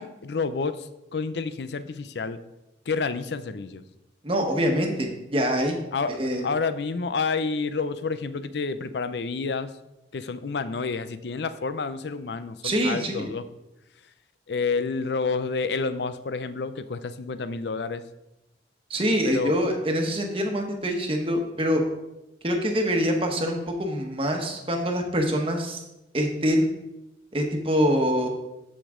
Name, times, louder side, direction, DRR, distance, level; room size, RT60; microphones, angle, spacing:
voice 1, 0.0-2.4 2.9-3.8 5.9-9.7 10.1-13.5 14.5-18.0 19.2-19.6, left 4 dB, 75° left, 13 dB, 0.5 m, -29 dB
voice 2, 4.2-5.8 6.2-6.4 12.6-13.3 18.9-21.8 22.4-25.8 26.1-26.7 27.3-28.3, equal, 30° right, 2 dB, 1.2 m, -25 dB
13.0 x 5.0 x 3.7 m, 0.93 s
head